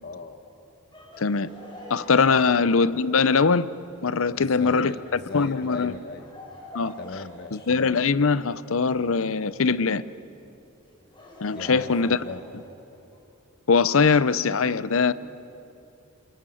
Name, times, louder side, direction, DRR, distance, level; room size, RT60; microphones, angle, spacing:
voice 1, 0.0-0.4 2.3-2.4 4.3-6.3 7.0-7.7 11.6-12.4, left 3 dB, 50° left, 6 dB, 1.2 m, -38 dB
Laughter, 0.9-10.0 10.8-13.2, left 1 dB, 20° left, 7.3 m, -47 dB
voice 2, 1.9-3.7 4.0-5.9 6.7-6.9 7.5-10.0 11.4-12.2 13.7-15.1, left 5 dB, 65° left, 17 dB, 0.7 m, -22 dB
27.5 x 27.0 x 7.8 m, 2.8 s
head